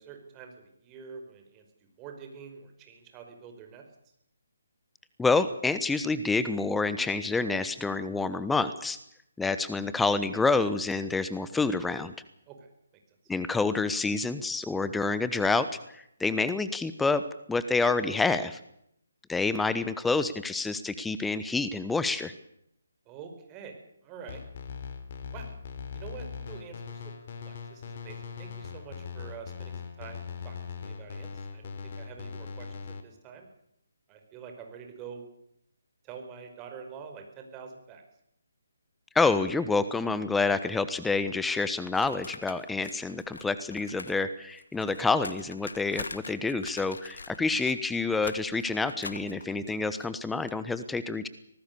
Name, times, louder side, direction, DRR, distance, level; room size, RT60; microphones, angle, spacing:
voice 1, 0.0-1.7 2.0-3.8 12.5-12.7 23.1-23.8 24.0-24.4 25.3-25.5 25.9-27.1 27.4-32.7 33.0-33.5 34.1-35.3 36.0-38.0, right 6 dB, 20° right, 5 dB, 5.3 m, -46 dB
voice 2, 5.2-9.0 9.4-12.1 13.3-17.2 17.5-18.6 19.3-22.3 39.1-51.3, left 3 dB, 5° left, 13 dB, 1.1 m, -28 dB
sound 1, 24.3-33.0, left 6 dB, 45° left, 3.8 m, -40 dB
sound 2, 41.9-44.2 44.4-50.5, left 3 dB, 70° left, 2.3 m, -44 dB
26.0 x 18.5 x 7.0 m, 0.75 s
figure-of-eight pair, 145°, 0 cm